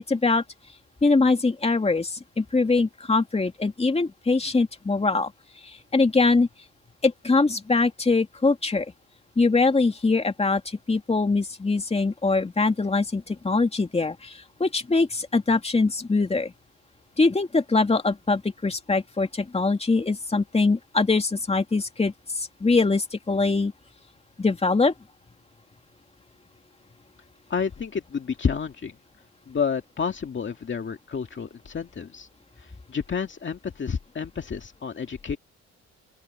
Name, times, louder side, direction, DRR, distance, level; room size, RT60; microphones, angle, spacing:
voice 1, 0.1-0.4 1.0-5.3 5.9-6.5 7.0-8.9 9.4-16.5 17.2-23.7 24.4-24.9, left 3 dB, 20° left, 2.6 m, -23 dB
voice 2, 27.5-28.9 29.5-32.3 32.6-35.4, left 6 dB, 40° left, 2.1 m, -30 dB
open air
cardioid pair, 90°, 30 cm